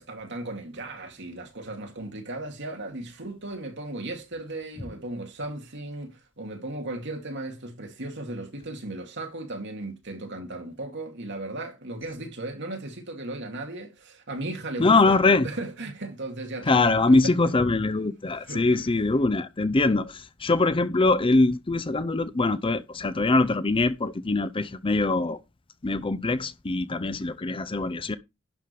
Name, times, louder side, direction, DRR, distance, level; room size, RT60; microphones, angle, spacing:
voice 1, 0.0-17.5 18.4-18.9, right 2 dB, 60° right, 2.4 m, -36 dB
voice 2, 14.8-15.5 16.7-25.4 25.8-28.2, left 3 dB, 25° left, 0.6 m, -23 dB
11.5 x 5.0 x 5.3 m
head